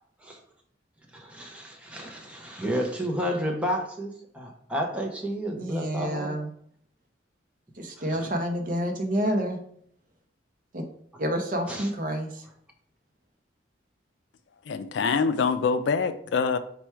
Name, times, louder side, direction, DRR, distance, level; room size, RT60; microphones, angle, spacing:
voice 1, 1.1-6.4 8.2-8.3 11.7-11.9, equal, 5° right, 0 dB, 0.6 m, -31 dB
voice 2, 5.6-6.5 7.8-9.6 10.7-10.8 11.2-12.4, equal, 45° right, 3 dB, 0.6 m, -28 dB
voice 3, 14.7-16.6, left 5 dB, 75° left, 11 dB, 0.3 m, -25 dB
4.4 x 2.3 x 4.4 m, 0.65 s
head